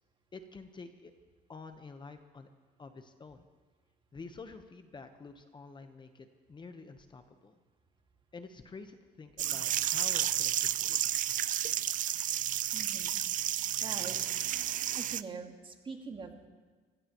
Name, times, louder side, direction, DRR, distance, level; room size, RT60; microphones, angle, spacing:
voice 1, 0.3-1.1 1.5-2.5 2.8-3.5 4.1-7.5 8.3-11.1, left 4 dB, 25° left, 7 dB, 1.0 m, -49 dB
sound 1, 9.4-15.2, right 11 dB, 50° right, 0.5 m, -31 dB
voice 2, 12.7-13.2 13.8-14.2 15.0-16.5, right 4 dB, 30° right, 4 dB, 1.8 m, -43 dB
26.0 x 16.0 x 3.0 m, 1.4 s
cardioid pair, 110°, 17 cm